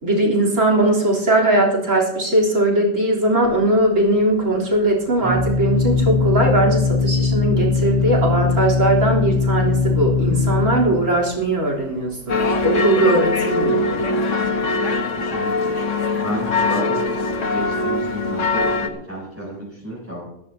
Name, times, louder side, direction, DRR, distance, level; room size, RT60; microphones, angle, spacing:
voice 1, 0.0-12.4 12.6-14.0, right 1 dB, 80° right, 0 dB, 4.1 m, -19 dB
Organ, 3.4-13.9, left 4 dB, 50° left, 2.1 m, -21 dB
sound 1, 12.3-18.9, left 3 dB, 70° left, 1.6 m, -22 dB
voice 2, 15.2-15.7 16.2-17.0 17.3-20.2, equal, 10° right, -7 dB, 6.9 m, -31 dB
20.5 x 14.0 x 2.8 m, 0.83 s
omnidirectional pair, 1.3 m